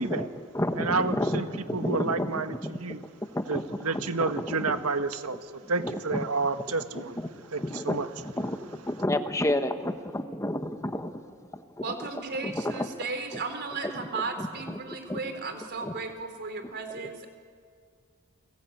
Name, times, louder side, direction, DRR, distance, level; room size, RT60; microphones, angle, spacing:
voice 1, 0.0-2.8 3.3-4.9 5.8-6.2 6.9-9.7 10.1-11.1 11.5-11.8 12.4-12.9 13.3-13.4 13.8-14.1 14.4-15.2 15.8-15.9, left 1 dB, 15° left, 8 dB, 1.1 m, -31 dB
voice 2, 0.8-1.5 1.7-3.0 3.5-7.2 7.5-8.1, right 4 dB, 85° right, 8 dB, 1.5 m, -30 dB
voice 3, 11.8-17.3, right 4 dB, 50° right, 6 dB, 3.9 m, -35 dB
29.5 x 21.5 x 9.3 m, 2.1 s
head